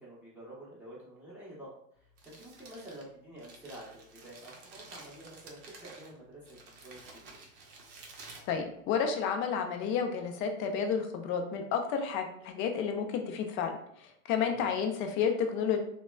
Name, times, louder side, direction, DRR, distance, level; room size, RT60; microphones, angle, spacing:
voice 1, 0.0-6.6 6.8-7.2 14.4-14.8, right 1 dB, 5° right, -9 dB, 0.9 m, -49 dB
Crumpling crinkling, 2.0-9.3, right 3 dB, 40° right, 0.7 m, -52 dB
voice 2, 8.5-13.7 14.0-15.8, left 6 dB, 30° left, 5 dB, 0.4 m, -31 dB
2.9 x 2.1 x 2.2 m, 0.68 s
hypercardioid pair, 100°, 39 cm